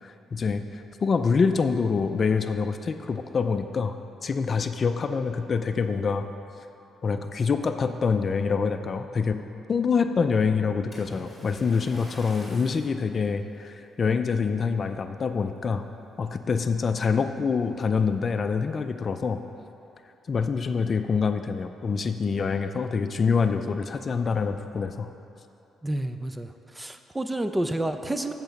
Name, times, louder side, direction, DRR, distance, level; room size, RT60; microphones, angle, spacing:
voice 1, 0.0-4.0 4.2-6.3 7.0-9.4 9.7-15.9 16.2-19.4 20.3-25.1, left 5 dB, 40° left, 8 dB, 0.4 m, -26 dB
Splash splatter, 10.9-13.0 13.6-13.8 14.4-14.5, left 1 dB, 10° left, 2.3 m, -46 dB
voice 2, 25.8-28.3, right 1 dB, 15° right, 8 dB, 0.5 m, -29 dB
8.0 x 7.2 x 5.2 m, 2.8 s
cardioid pair, 90°, 0 cm